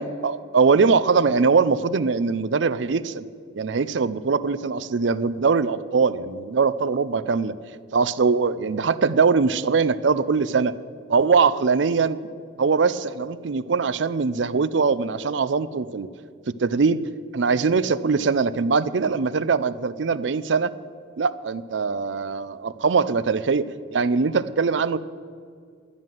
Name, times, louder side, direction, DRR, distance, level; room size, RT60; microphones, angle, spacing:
voice 1, 0.2-3.3 3.5-7.5 7.9-10.7 11.1-12.2 12.6-16.1 16.5-17.1 17.3-20.7 21.2-25.0, right 5 dB, 70° right, 16 dB, 0.5 m, -22 dB
12.5 x 9.4 x 7.5 m, 2.1 s
head